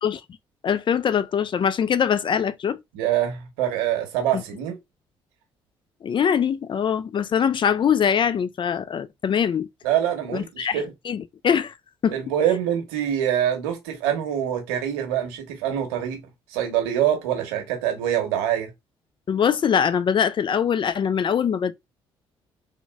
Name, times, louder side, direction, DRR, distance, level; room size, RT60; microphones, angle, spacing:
voice 1, 0.6-2.8 4.3-4.4 6.0-9.7 10.3-11.7 12.0-12.1 19.3-21.7, left 7 dB, 40° left, 0.4 m, -23 dB
voice 2, 2.9-4.8 9.8-10.9 12.1-16.2 16.5-18.7, right 10 dB, 85° right, 0.9 m, -25 dB
3.7 x 2.1 x 2.2 m
hypercardioid pair, 50°, 12 cm